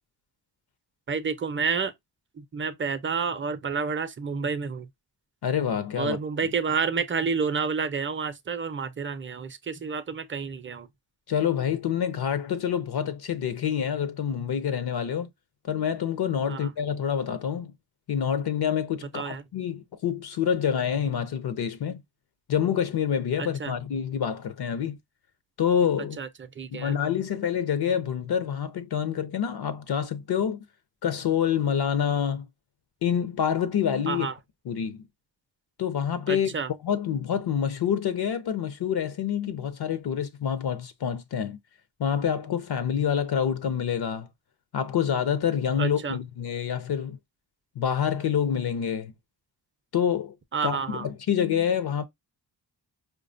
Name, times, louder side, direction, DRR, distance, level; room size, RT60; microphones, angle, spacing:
voice 1, 1.1-1.9 2.4-4.9 6.0-10.9 16.5-16.7 19.1-19.4 23.4-23.7 26.2-26.3 26.6-27.0 34.1-34.3 36.3-36.7 45.8-46.2 50.5-51.1, right 5 dB, 25° right, 0.5 m, -29 dB
voice 2, 5.4-6.2 11.3-15.3 15.7-17.7 18.1-22.0 22.5-25.0 25.6-26.2 26.7-30.6 31.0-32.5 33.0-34.3 34.7-35.0 35.8-36.5 36.8-41.6 42.0-44.3 44.7-47.2 47.8-49.1 49.9-50.3 50.6-52.0, left 8 dB, 60° left, 0.6 m, -27 dB
4.7 x 2.3 x 2.5 m
cardioid pair, 55°, 45 cm